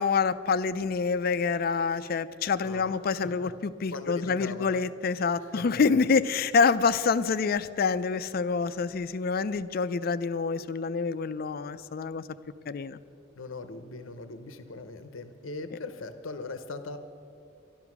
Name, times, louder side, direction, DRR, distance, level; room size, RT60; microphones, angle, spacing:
voice 1, 0.0-12.2 12.7-13.0, left 5 dB, 50° left, 14 dB, 0.4 m, -27 dB
voice 2, 2.6-3.5 3.9-4.8 5.4-5.6 13.4-17.0, left 3 dB, 80° left, 9 dB, 0.7 m, -40 dB
12.5 x 12.0 x 6.0 m, 2.6 s
head